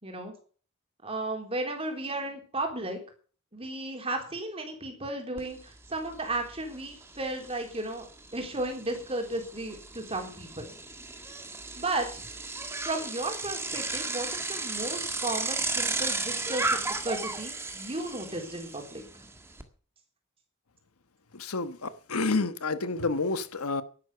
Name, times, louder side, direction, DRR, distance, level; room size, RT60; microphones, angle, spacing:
voice 1, 0.0-0.3 1.0-3.0 3.5-8.1 8.3-10.7 11.8-12.2 12.8-19.0, right 2 dB, 25° right, 3.7 m, -34 dB
Bicycle, 5.4-5.5 5.8-19.6, right 3 dB, 10° right, 1.6 m, -35 dB
voice 2, 21.3-23.8, left 3 dB, 85° left, 1.2 m, -29 dB
11.5 x 11.5 x 6.7 m
head